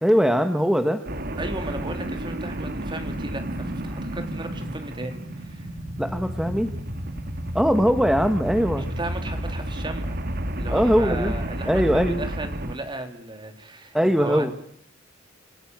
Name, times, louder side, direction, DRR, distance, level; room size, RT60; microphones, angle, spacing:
voice 1, 0.0-1.0 6.0-6.7 7.5-8.9 10.7-12.2 13.9-14.5, equal, 5° right, 7 dB, 1.3 m, -21 dB
sound 1, 1.1-12.8, right 1 dB, 50° right, 2.2 m, -31 dB
voice 2, 1.4-5.7 8.8-10.2 10.6-14.5, right 2 dB, 25° right, 6 dB, 3.5 m, -35 dB
28.0 x 15.5 x 9.4 m, 0.66 s
head